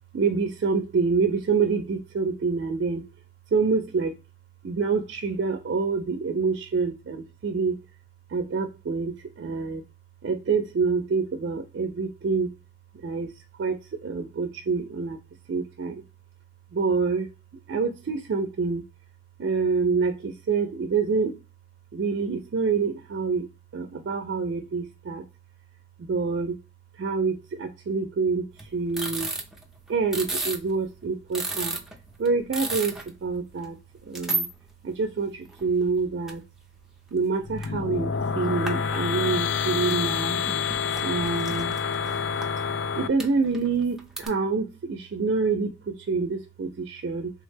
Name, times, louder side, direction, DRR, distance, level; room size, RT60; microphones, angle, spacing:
voice 1, 0.1-3.0 3.5-4.1 4.6-7.8 8.3-9.8 10.2-12.5 13.0-13.3 13.6-13.8 14.0-15.2 15.5-16.0 16.7-17.3 17.7-18.8 19.4-21.3 21.9-23.5 23.7-25.2 26.1-26.6 27.0-28.4 28.7-29.3 29.9-31.8 32.2-33.0 33.2-33.8 34.1-34.5 34.8-36.4 37.1-40.4 41.0-41.8 42.9-47.3, right 4 dB, 70° right, 5 dB, 0.4 m, -26 dB
sound 1, 28.6-30.7 31.0-31.1 31.3-33.1 33.3-33.4 34.1-34.5 35.0-35.1 35.5-36.3 36.8-36.9 37.5-37.6 37.9-38.1 38.7-39.1 39.6-40.1 40.4-42.4 43.2-44.3, right 3 dB, ahead, 0.4 m, -32 dB
sound 2, 37.4-43.1, left 6 dB, 70° left, 0.3 m, -28 dB
3.4 x 2.1 x 3.2 m, 0.30 s
head